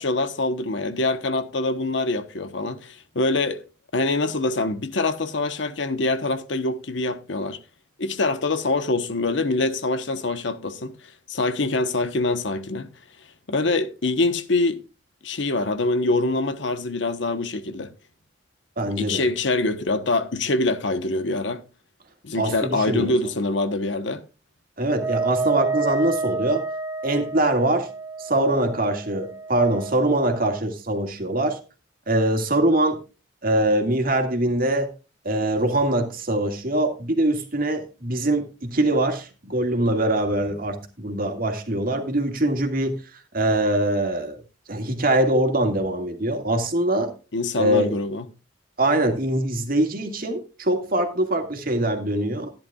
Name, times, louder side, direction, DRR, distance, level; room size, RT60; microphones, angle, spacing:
voice 1, 0.0-3.6 3.9-7.6 8.0-10.9 11.3-12.9 13.5-14.8 15.2-17.9 19.0-21.6 22.2-24.2 47.3-48.3, left 2 dB, 75° left, 1.1 m, -24 dB
voice 2, 18.8-19.2 22.3-23.2 24.8-26.7 27.0-27.9 28.2-31.6 32.1-33.0 33.4-34.9 35.2-43.0 43.3-44.4 44.7-47.1 47.6-48.0 48.8-52.5, right 1 dB, 50° right, 2.0 m, -23 dB
Wind instrument woodwind instrument, 24.9-30.6, right 4 dB, 10° right, 1.2 m, -29 dB
14.0 x 10.5 x 2.4 m
head